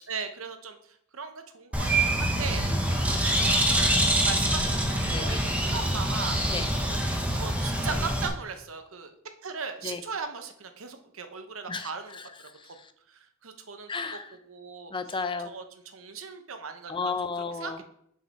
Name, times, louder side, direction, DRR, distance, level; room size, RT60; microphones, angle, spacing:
voice 1, 0.1-2.6 3.1-6.4 6.9-9.2 9.4-12.2 12.6-12.8 13.1-14.2 14.5-14.9 15.4-17.1 17.6-17.9, right 5 dB, 75° right, 7 dB, 0.9 m, -38 dB
Bird, 1.7-8.3, right 1 dB, 5° right, 1.0 m, -25 dB
voice 2, 2.7-3.0 5.1-5.4 6.5-6.7 9.8-10.0 11.7-12.3 12.6-12.9 13.9-14.4 14.9-15.5 16.9-17.8, left 4 dB, 25° left, 10 dB, 0.5 m, -34 dB
6.4 x 5.3 x 5.7 m, 0.71 s
head